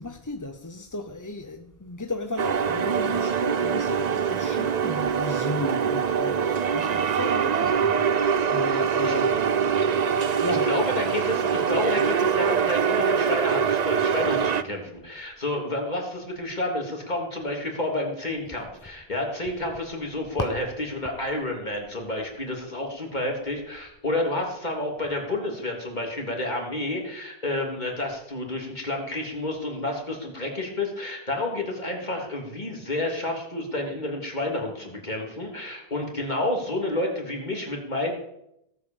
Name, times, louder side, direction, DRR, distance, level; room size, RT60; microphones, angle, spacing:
voice 1, 0.0-9.4 10.4-10.7 20.4-20.5, left 2 dB, 20° left, 0.7 m, -34 dB
sound 1, 2.4-14.6, right 7 dB, 50° right, 0.7 m, -24 dB
voice 2, 8.7-9.1 10.3-38.1, left 1 dB, 45° left, 3.3 m, -30 dB
17.0 x 8.5 x 7.2 m
omnidirectional pair, 1.0 m